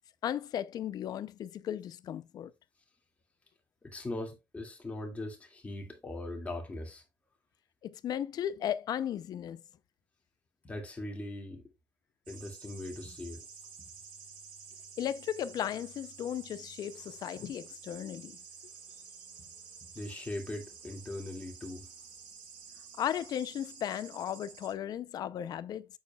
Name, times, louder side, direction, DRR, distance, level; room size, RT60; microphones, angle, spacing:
voice 1, 0.2-2.5 7.8-9.6 15.0-18.4 23.0-25.9, left 10 dB, 55° left, 0.5 m, -35 dB
voice 2, 3.8-7.0 10.6-11.6 12.3-13.4 13.8-13.9 19.9-21.9, left 1 dB, 20° left, 2.2 m, -40 dB
sound 1, 12.3-24.7, right 6 dB, 90° right, 1.8 m, -51 dB
8.6 x 7.2 x 2.3 m
cardioid pair, 160°, 8 cm